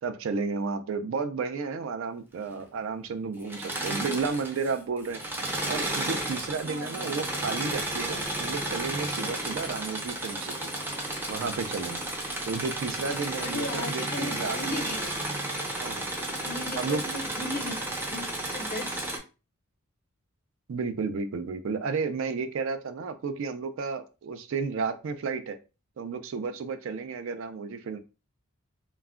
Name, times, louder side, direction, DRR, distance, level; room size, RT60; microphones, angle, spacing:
voice 1, 0.0-5.2 5.7-10.7 11.3-12.0 12.4-14.9 15.8-16.1 16.8-17.0 20.7-25.6 26.0-28.0, right 4 dB, 65° right, 9 dB, 0.4 m, -32 dB
Engine / Mechanisms, 3.4-4.7 5.0-19.2, right 1 dB, 10° right, 0.5 m, -33 dB
voice 2, 6.6-7.2 13.4-15.3 16.4-19.0, left 2 dB, 40° left, 6 dB, 0.5 m, -37 dB
2.3 x 2.1 x 3.5 m, 0.31 s
head